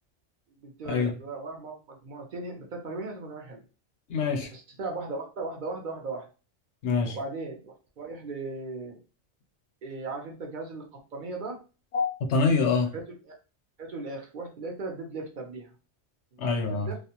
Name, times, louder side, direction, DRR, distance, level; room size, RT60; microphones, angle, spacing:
voice 1, 0.6-3.6 4.5-6.3 7.1-9.0 9.8-11.6 12.9-13.4 13.8-15.7 16.3-17.0, right 3 dB, 55° right, 1 dB, 0.6 m, -37 dB
voice 2, 4.1-4.5 6.8-7.2 11.9-12.9 16.4-16.9, left 4 dB, 75° left, 5 dB, 0.9 m, -25 dB
2.4 x 2.1 x 2.8 m, 0.34 s
omnidirectional pair, 1.2 m